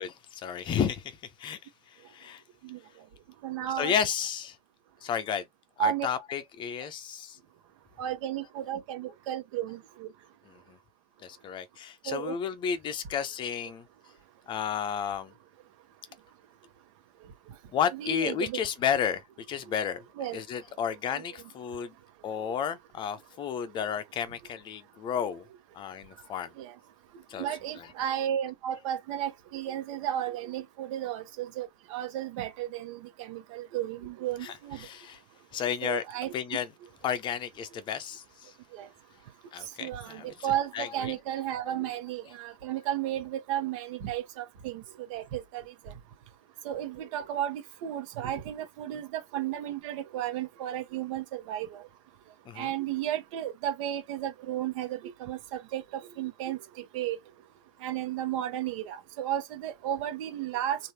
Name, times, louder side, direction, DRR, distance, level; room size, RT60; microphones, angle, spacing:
voice 1, 0.0-2.4 3.7-4.6 5.0-5.5 5.8-7.4 10.4-10.8 11.2-13.9 14.5-15.3 17.7-20.0 20.3-21.9 22.2-25.5 25.7-26.5 27.3-27.5 27.8-28.1 34.4-35.2 35.5-36.0 36.3-36.7 37.0-38.5 39.5-41.2 48.9-49.0 52.5-52.7, left 8 dB, 25° left, 0.7 m, -32 dB
voice 2, 3.4-3.9 5.8-6.1 8.0-10.1 12.1-12.3 17.9-18.6 20.2-20.4 21.1-21.2 26.6-26.7 27.4-34.8 35.8-36.3 38.7-38.9 39.8-44.8 45.1-45.6 46.6-51.7 52.6-55.8 56.2-56.6 56.9-57.2 57.8-60.8, right 11 dB, 50° right, 1.2 m, -33 dB
3.2 x 2.7 x 2.8 m
hypercardioid pair, 125°, 20 cm